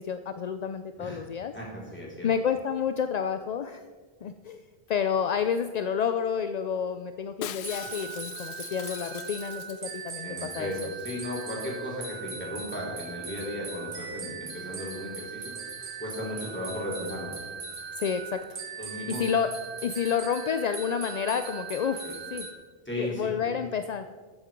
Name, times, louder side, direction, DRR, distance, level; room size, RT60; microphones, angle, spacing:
voice 1, 0.0-1.5 2.2-3.8 4.2-4.6 4.9-10.7 17.9-18.6 18.9-19.5 19.8-22.5 23.0-24.1, left 7 dB, 55° left, 9 dB, 0.5 m, -29 dB
voice 2, 1.5-2.3 10.2-17.3 18.8-19.2 22.0-22.1 22.9-23.3, left 1 dB, 10° left, -5 dB, 4.0 m, -36 dB
Shatter, 7.4-10.2 10.4-10.5 10.7-11.1 11.4-11.5, left 10 dB, 90° left, 0.9 m, -42 dB
sound 1, 7.6-22.5, right 6 dB, 90° right, 1.8 m, -39 dB
14.5 x 7.6 x 5.1 m, 1.5 s
omnidirectional pair, 1.1 m